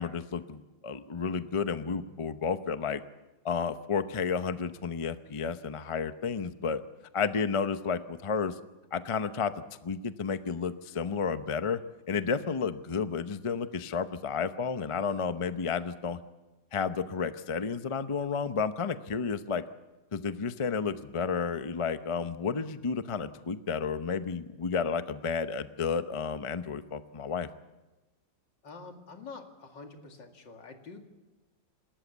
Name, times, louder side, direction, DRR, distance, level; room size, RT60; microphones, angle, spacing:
voice 1, 0.0-3.0 3.4-6.8 7.1-8.5 8.9-9.5 9.8-11.8 12.1-16.2 16.7-19.6 20.1-27.5, left 5 dB, 55° left, 11 dB, 0.3 m, -31 dB
voice 2, 28.6-31.0, left 4 dB, 75° left, 4 dB, 2.9 m, -46 dB
27.5 x 13.5 x 8.1 m, 1.1 s
omnidirectional pair, 2.0 m